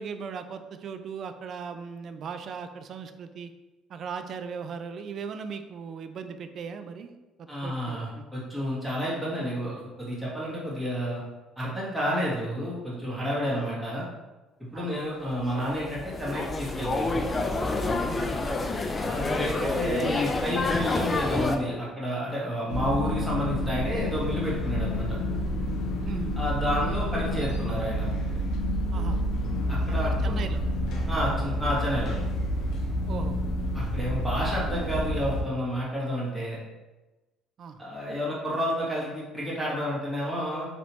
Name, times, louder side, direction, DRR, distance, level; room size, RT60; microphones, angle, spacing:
voice 1, 0.0-3.5 3.9-8.2 13.5-13.7 14.7-15.0 18.0-18.4 26.0-26.4 28.9-29.2 30.0-30.6 33.1-33.4 37.6-37.8, right 6 dB, 55° right, 9 dB, 0.3 m, -38 dB
voice 2, 7.5-11.2 11.6-14.0 14.6-17.3 19.0-25.1 26.4-28.1 29.7-30.5 31.1-32.1 33.7-36.6 37.8-40.7, equal, 10° right, -6 dB, 1.4 m, -30 dB
sound 1, 15.3-21.6, left 2 dB, 25° left, 0.4 m, -28 dB
sound 2, 22.7-35.4, equal, 70° left, 0.7 m, -29 dB
3.0 x 2.9 x 3.0 m, 1.1 s
supercardioid pair, 80°, 0 cm